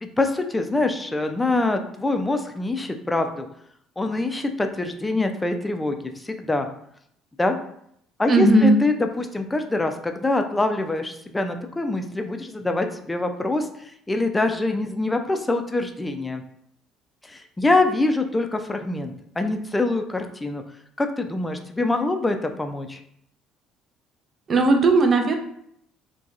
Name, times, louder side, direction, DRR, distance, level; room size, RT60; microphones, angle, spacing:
voice 1, 0.0-3.5 4.0-6.7 7.4-7.6 8.2-16.4 17.2-20.6 21.0-23.0, left 2 dB, 15° left, 6 dB, 0.4 m, -24 dB
voice 2, 8.3-8.8 24.5-25.3, right 2 dB, 40° right, 4 dB, 0.5 m, -16 dB
2.7 x 2.2 x 2.4 m, 0.72 s
hypercardioid pair, 65°, 0 cm